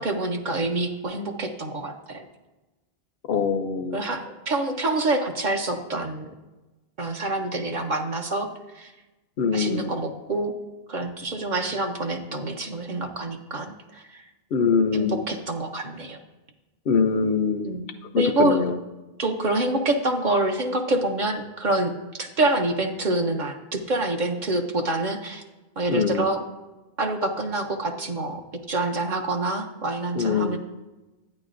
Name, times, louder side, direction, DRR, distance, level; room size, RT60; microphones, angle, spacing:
voice 1, 0.0-2.2 3.9-6.3 7.0-8.5 8.7-8.9 9.5-10.5 10.9-14.2 14.9-16.2 17.6-18.8 19.2-21.9 22.2-25.4 25.8-26.4 27.0-28.4 28.7-30.6, right 2 dB, 50° right, 4 dB, 0.8 m, -26 dB
voice 2, 3.3-4.0 9.4-9.9 14.5-15.2 16.9-17.7 18.1-18.7 25.9-26.3 30.2-30.6, left 5 dB, 70° left, 9 dB, 0.7 m, -23 dB
10.5 x 9.0 x 2.5 m, 1.1 s
omnidirectional pair, 1.1 m